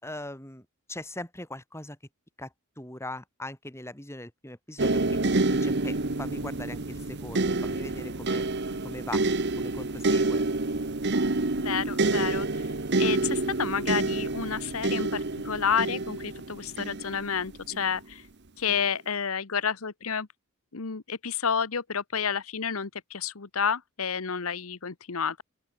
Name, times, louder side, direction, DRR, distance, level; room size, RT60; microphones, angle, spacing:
voice 1, 0.0-2.0 2.4-2.5 2.8-8.4 8.8-9.3 9.6-10.4, left 1 dB, 10° left, 7.2 m, -40 dB
sound 1, 4.8-17.9 18.7-18.9, right 2 dB, 55° right, 1.3 m, -28 dB
voice 2, 11.6-12.5 13.0-15.2 15.4-18.2 18.6-20.3 20.7-25.4, left 6 dB, 80° left, 1.1 m, -30 dB
open air
head